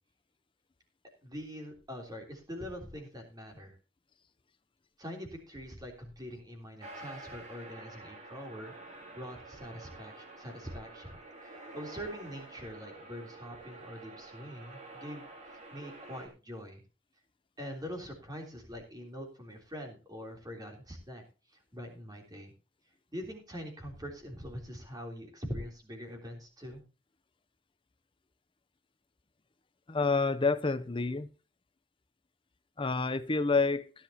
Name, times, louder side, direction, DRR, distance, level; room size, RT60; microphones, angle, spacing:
voice 1, 1.2-3.8 5.0-11.2 11.4-15.3 15.7-16.8 17.6-21.2 21.5-22.5 23.1-26.8, equal, 20° right, 2 dB, 3.4 m, -43 dB
sound 1, 6.8-16.3, right 2 dB, 35° right, 2.8 m, -49 dB
voice 2, 29.9-31.3 32.8-33.9, left 4 dB, 25° left, 11 dB, 0.6 m, -28 dB
17.0 x 10.5 x 2.9 m, 0.32 s
head